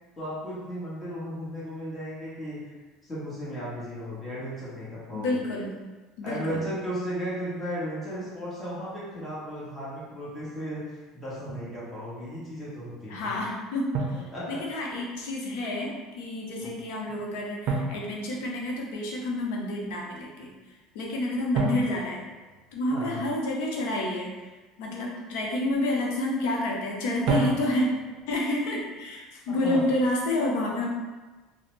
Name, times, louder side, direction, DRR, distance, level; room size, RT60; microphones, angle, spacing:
voice 1, 0.2-2.6 3.0-5.4 6.2-13.3 14.1-14.6 16.6-16.7 22.9-23.2 29.5-29.8, equal, 15° left, -8 dB, 1.1 m, -35 dB
voice 2, 5.1-5.8 6.2-6.6 13.1-20.5 20.9-22.2 22.7-24.5 24.8-27.9 28.3-30.9, left 1 dB, 80° left, -2 dB, 0.6 m, -29 dB
Drum, 11.5-11.8 13.9-15.1 17.7-19.1 21.5-23.3 27.3-28.2, right 3 dB, 60° right, 0.4 m, -31 dB
2.5 x 2.0 x 3.1 m, 1.2 s
supercardioid pair, 125°, 0 cm